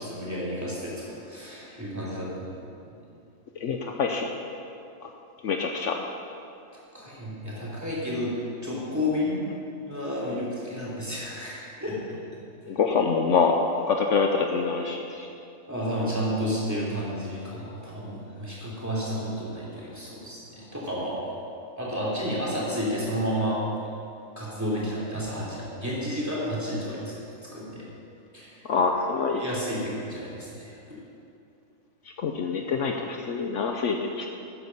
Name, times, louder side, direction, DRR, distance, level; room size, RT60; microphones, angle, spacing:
voice 1, 0.0-2.5 2.8-2.9 6.7-8.3 8.6-9.4 9.8-12.0 15.7-21.2 21.8-23.6 24.3-27.2 27.5-27.8 28.3-28.6 29.4-30.8, equal, 10° right, -6 dB, 3.3 m, -31 dB
voice 2, 3.6-4.3 5.4-6.0 12.7-13.6 13.9-15.3 28.7-29.4 32.2-34.3, left 5 dB, 65° left, 3 dB, 1.0 m, -25 dB
13.0 x 9.5 x 5.5 m, 2.6 s
omnidirectional pair, 1.4 m